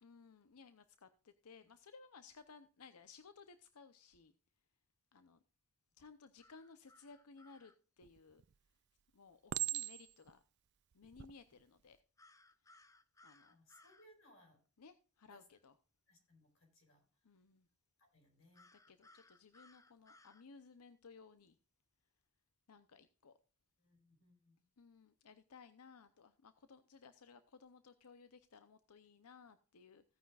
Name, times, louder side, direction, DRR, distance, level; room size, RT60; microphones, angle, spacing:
voice 1, 0.0-4.3 5.1-5.4 6.0-8.4 9.1-10.4 10.9-12.0 13.2-13.6 14.8-15.7 17.2-17.7 18.7-21.6 22.7-23.3 24.8-30.0, left 4 dB, 90° left, 11 dB, 0.7 m, -60 dB
sound 1, 6.4-7.8 12.2-14.1 18.5-20.4, left 2 dB, 15° left, 0.6 m, -65 dB
Chink clink, 8.0-8.5 9.5-10.3 11.0-11.3, right 15 dB, 50° right, 0.4 m, -40 dB
voice 2, 13.5-14.6 15.3-15.4 16.1-17.0 18.0-18.7 23.8-24.6, left 1 dB, 60° left, 2 dB, 4.6 m, -67 dB
16.0 x 9.3 x 2.4 m, 0.36 s
head